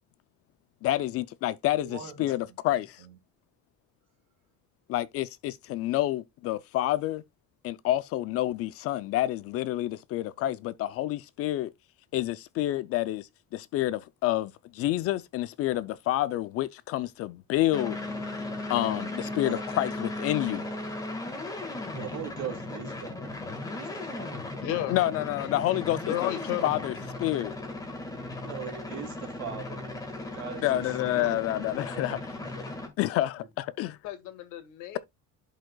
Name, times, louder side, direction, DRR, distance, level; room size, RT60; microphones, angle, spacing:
voice 1, 0.8-3.0 4.9-7.2 7.6-11.7 12.1-18.0 18.7-20.7 24.9-26.3 26.6-26.9 27.2-27.5 30.6-32.6 33.0-34.0, left 14 dB, 50° left, 0.4 m, -28 dB
voice 2, 1.7-2.2 3.0-3.1 19.4-19.6 21.9-23.3 23.6-24.5 28.4-30.0 30.3-30.8 31.1-32.6, right 9 dB, 60° right, 2.7 m, -41 dB
sound 1, 17.7-32.9, left 2 dB, 10° left, 1.6 m, -37 dB
voice 3, 24.6-25.0 26.1-26.8 34.0-35.0, left 12 dB, 75° left, 1.8 m, -32 dB
11.5 x 5.1 x 2.2 m
cardioid pair, 175°, 30 cm